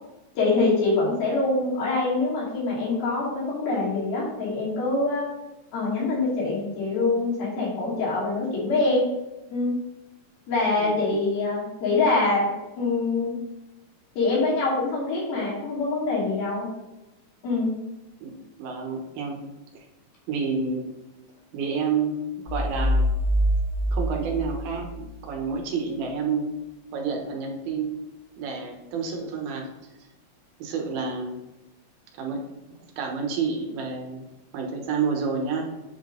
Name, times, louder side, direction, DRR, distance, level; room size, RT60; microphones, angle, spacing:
voice 1, 0.4-5.3 5.7-9.1 9.5-9.7 10.5-12.5 12.8-13.4 14.2-16.7 17.4-17.7, left 3 dB, 85° left, -6 dB, 4.4 m, -24 dB
voice 2, 18.6-19.4 20.3-20.8 21.5-22.2 22.5-23.1 23.9-26.5 26.9-27.9 28.4-29.7 30.6-31.4 32.2-32.4 33.0-34.3 34.5-35.7, right 5 dB, 85° right, 1 dB, 3.0 m, -29 dB
sound 1, 22.5-25.3, equal, 45° right, 0.9 m, -25 dB
8.5 x 3.7 x 3.8 m, 0.98 s
omnidirectional pair, 4.2 m